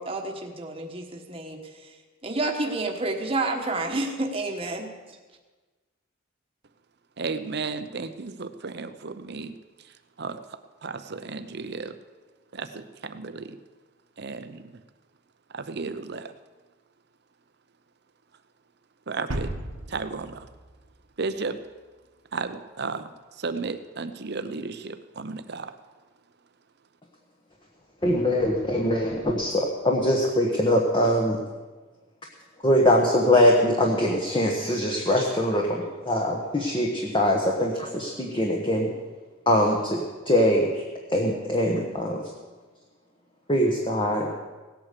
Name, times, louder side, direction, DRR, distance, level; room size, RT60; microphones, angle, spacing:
voice 1, 0.0-1.9 2.2-4.9, right 2 dB, 25° right, 2 dB, 1.3 m, -29 dB
voice 2, 7.2-9.5 9.8-12.0 12.5-13.6 14.2-14.8 15.5-16.3 19.1-19.5 19.9-20.5 21.2-21.6 22.3-25.8, right 4 dB, 50° right, 10 dB, 0.7 m, -34 dB
sound 1, 19.3-21.4, right 1 dB, 90° right, 1.5 m, -35 dB
voice 3, 28.0-31.4 32.6-38.9 39.5-42.3 43.5-44.3, left 1 dB, 25° left, 0 dB, 1.2 m, -23 dB
17.0 x 8.8 x 6.8 m, 1.3 s
head